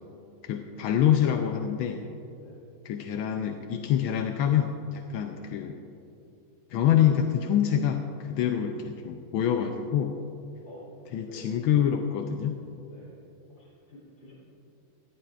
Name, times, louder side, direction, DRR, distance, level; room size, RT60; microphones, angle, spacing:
voice 1, 0.4-2.0 2.8-5.8 6.7-10.2 11.1-12.5, left 9 dB, 80° left, 4 dB, 1.4 m, -26 dB
voice 2, 13.5-14.3, left 1 dB, 60° left, -7 dB, 4.2 m, -50 dB
19.0 x 14.0 x 2.5 m, 2.7 s
omnidirectional pair, 2.3 m